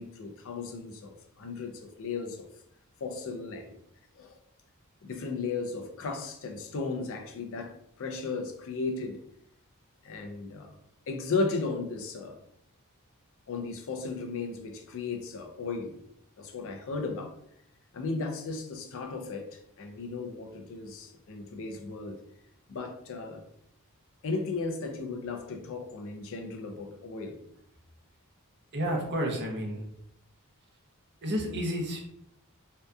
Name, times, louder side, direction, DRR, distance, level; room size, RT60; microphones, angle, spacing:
voice 1, 0.0-2.5 3.0-3.8 4.2-4.4 5.0-9.2 10.0-10.7 11.1-12.4 13.5-16.0 16.4-17.3 17.9-22.2 22.7-23.4 24.2-27.4, left 4 dB, 65° left, 4 dB, 0.4 m, -35 dB
voice 2, 28.7-29.9 31.2-32.0, equal, 50° right, 0 dB, 0.6 m, -30 dB
2.7 x 2.3 x 2.2 m, 0.72 s
head